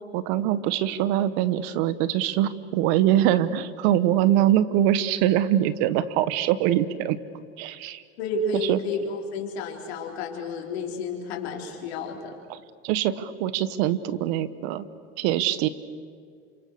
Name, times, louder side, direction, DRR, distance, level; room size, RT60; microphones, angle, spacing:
voice 1, 0.1-7.2 7.6-8.0 8.6-8.8 12.5-12.6 12.8-14.9 15.2-15.7, right 12 dB, 75° right, 15 dB, 1.3 m, -23 dB
voice 2, 8.2-12.3, left 3 dB, 85° left, 1 dB, 4.3 m, -31 dB
29.0 x 27.0 x 6.7 m, 2.1 s
supercardioid pair, 95°, 31 cm